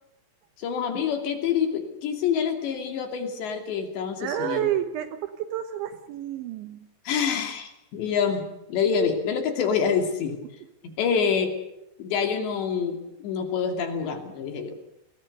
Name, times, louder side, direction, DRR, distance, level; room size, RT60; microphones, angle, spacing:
voice 1, 0.6-4.7 7.1-10.4 10.8-11.5 12.0-14.8, left 6 dB, 60° left, 6 dB, 4.8 m, -26 dB
voice 2, 4.2-6.9, right 11 dB, 70° right, 9 dB, 3.4 m, -30 dB
28.5 x 21.0 x 6.8 m, 0.87 s
omnidirectional pair, 5.8 m